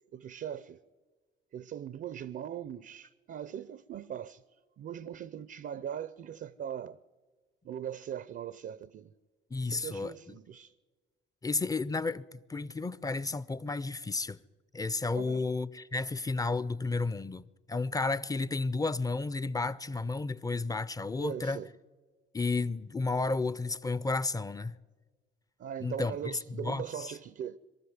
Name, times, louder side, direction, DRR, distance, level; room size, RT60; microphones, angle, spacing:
voice 1, 0.1-0.8 1.5-4.4 4.8-7.0 7.6-9.1 9.6-10.7 15.1-15.4 21.2-21.7 25.6-27.6, right 9 dB, 55° right, 0.6 m, -40 dB
voice 2, 9.5-10.3 11.4-14.4 14.7-21.6 22.3-24.8 25.8-27.1, left 3 dB, 20° left, 0.6 m, -32 dB
23.0 x 13.0 x 9.5 m
cardioid pair, 90°, 20 cm